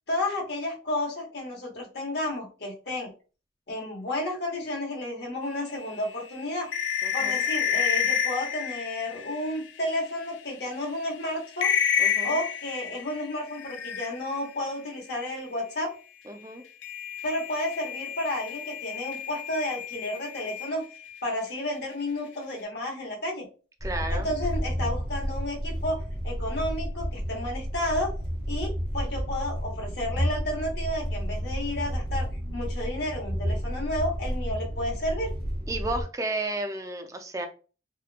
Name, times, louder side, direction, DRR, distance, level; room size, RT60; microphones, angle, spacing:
voice 1, 0.1-3.1 3.7-6.7 7.1-11.7 12.2-15.9 17.2-20.8 21.2-23.5 24.1-28.1 28.5-32.3 32.5-35.3, left 1 dB, 60° left, 0 dB, 0.9 m, -32 dB
sound 1, 5.7-10.1 10.6-10.7 11.0-11.2 11.5-14.5 16.8-21.2, left 8 dB, 80° left, 0.4 m, -30 dB
voice 2, 7.0-7.4 12.0-12.4 16.3-16.6 23.8-24.3 35.7-37.5, right 2 dB, 20° right, 5 dB, 0.4 m, -33 dB
sound 2, 23.8-36.0, equal, 30° left, 1.1 m, -31 dB
2.8 x 2.2 x 2.4 m, 0.36 s
head